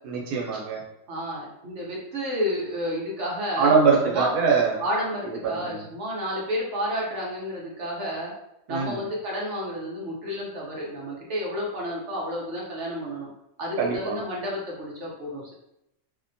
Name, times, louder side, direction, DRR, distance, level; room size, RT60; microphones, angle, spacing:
voice 1, 0.0-0.8 3.6-4.8 5.4-5.8 8.7-9.0 13.8-14.2, right 5 dB, 80° right, 0 dB, 1.2 m, -23 dB
voice 2, 1.1-3.7 4.1-4.4 4.8-8.3 8.7-13.3 13.6-15.5, equal, 55° right, -4 dB, 0.9 m, -31 dB
2.8 x 2.1 x 2.6 m, 0.83 s
omnidirectional pair, 1.7 m